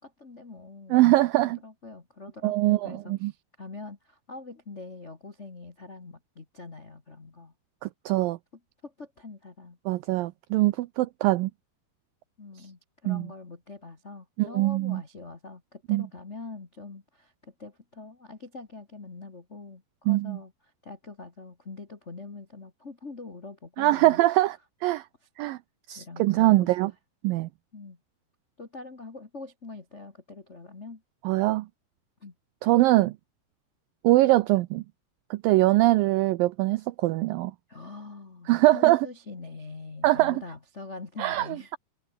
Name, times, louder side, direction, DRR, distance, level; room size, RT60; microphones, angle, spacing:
voice 1, 0.0-7.5 8.5-9.8 12.4-24.2 25.2-25.3 25.9-26.7 27.7-28.0 28.6-31.0 32.2-32.3 37.7-41.8, left 3 dB, 75° left, 0.6 m, -44 dB
voice 2, 0.9-1.6 2.4-3.3 7.8-8.4 9.9-11.5 13.1-13.2 14.4-15.0 15.9-16.1 20.1-20.4 23.8-24.6 24.8-25.0 25.4-25.6 25.9-26.9 27.2-27.5 31.3-31.7 32.6-33.1 34.0-34.8 35.3-37.5 38.5-39.0 40.0-40.4 41.2-41.5, right 18 dB, 85° right, 2.0 m, -22 dB
omnidirectional pair, 4.8 m